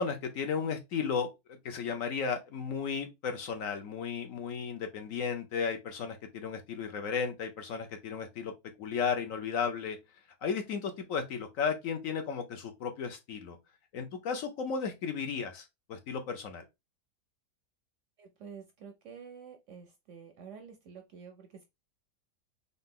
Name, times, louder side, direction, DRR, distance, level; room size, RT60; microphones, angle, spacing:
voice 1, 0.0-8.5 8.8-10.0 10.4-13.6 13.9-16.6, left 6 dB, 65° left, 1.0 m, -34 dB
voice 2, 18.2-21.6, right 6 dB, 65° right, 0.8 m, -49 dB
3.9 x 2.8 x 3.6 m
omnidirectional pair, 1.7 m